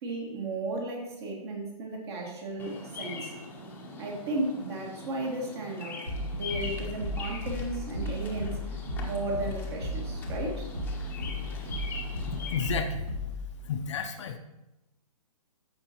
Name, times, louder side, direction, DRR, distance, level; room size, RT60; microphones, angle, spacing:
voice 1, 0.0-3.3 4.0-6.1 6.3-10.7, right 2 dB, 45° right, -1 dB, 2.3 m, -34 dB
Bird vocalization bird call bird song, 2.6-12.7, left 3 dB, 10° left, 0.9 m, -42 dB
sound 1, 6.1-13.6, left 1 dB, 85° right, 2.8 m, -35 dB
voice 2, 12.5-13.0 13.6-14.4, left 6 dB, 50° left, 7 dB, 0.7 m, -31 dB
13.5 x 5.3 x 2.9 m, 0.95 s
hypercardioid pair, 140°, 20 cm